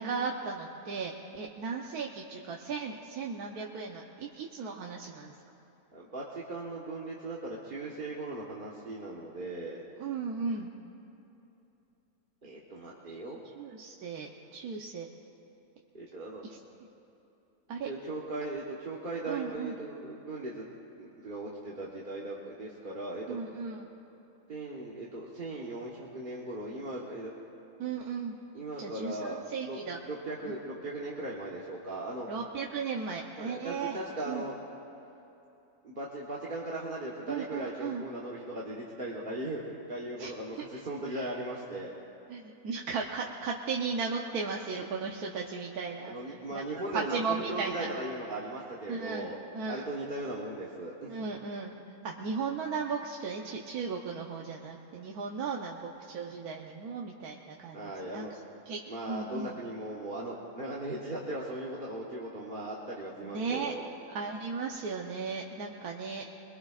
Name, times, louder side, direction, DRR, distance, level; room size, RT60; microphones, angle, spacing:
voice 1, 0.0-5.3 10.0-10.7 13.1-13.2 13.6-15.1 16.4-16.6 17.7-17.9 19.3-19.7 23.3-23.9 27.8-28.4 28.8-30.0 30.4-30.5 32.3-34.0 34.3-34.4 37.3-38.0 40.2-40.3 41.1-41.3 42.3-46.1 46.5-46.6 46.9-47.9 48.9-49.3 49.5-49.9 51.1-51.7 52.0-58.2 58.7-58.8 59.1-59.5 63.2-63.7 64.1-66.3, right 5 dB, 85° right, -1 dB, 1.4 m, -36 dB
voice 2, 5.9-9.8 12.4-13.4 15.9-16.5 17.8-23.4 24.5-27.3 28.5-29.8 30.0-32.3 33.4-34.6 35.8-41.9 46.0-49.4 49.7-51.1 57.7-58.3 58.9-63.9, right 2 dB, 35° right, -5 dB, 1.3 m, -38 dB
22.0 x 22.0 x 2.4 m, 2.9 s
omnidirectional pair, 1.6 m